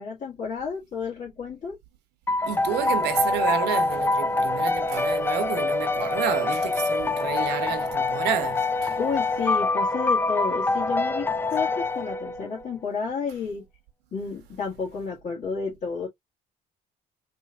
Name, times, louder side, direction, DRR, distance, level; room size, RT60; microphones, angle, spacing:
voice 1, 0.0-1.8 9.0-13.6 14.1-16.1, left 5 dB, 45° left, 1.9 m, -31 dB
sound 1, 2.3-12.6, left 3 dB, 15° left, 0.4 m, -25 dB
voice 2, 2.5-8.9, right 9 dB, 85° right, 1.0 m, -30 dB
4.4 x 3.2 x 2.4 m
cardioid pair, 110°, 17 cm